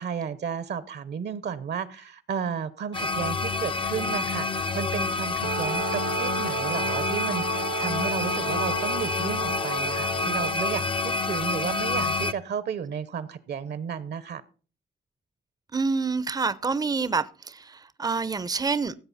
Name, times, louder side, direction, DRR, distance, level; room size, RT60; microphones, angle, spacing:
voice 1, 0.0-10.9 11.2-14.4, right 7 dB, 60° right, 1.0 m, -33 dB
sound 1, 2.9-12.3, left 3 dB, 25° left, 0.6 m, -28 dB
Wind instrument woodwind instrument, 5.4-10.6, right 6 dB, 85° right, 1.0 m, -34 dB
voice 2, 15.7-19.0, right 4 dB, 20° right, 0.7 m, -27 dB
16.0 x 7.6 x 4.2 m
cardioid pair, 90°, 20 cm